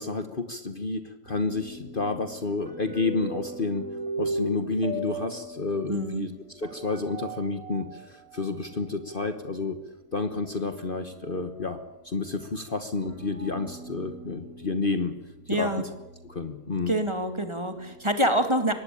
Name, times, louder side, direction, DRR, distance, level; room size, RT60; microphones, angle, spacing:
voice 1, 0.0-3.9 4.2-9.8 10.1-11.8 12.0-15.1 15.5-15.7 16.2-16.9, left 3 dB, 40° left, 8 dB, 1.4 m, -30 dB
sound 1, 1.2-9.5 10.1-18.2, right 1 dB, 90° right, 4.2 m, -40 dB
voice 2, 5.9-6.2 15.5-15.8 16.9-18.7, right 1 dB, 20° right, 7 dB, 2.3 m, -26 dB
24.0 x 18.5 x 8.8 m, 1.0 s
omnidirectional pair, 1.5 m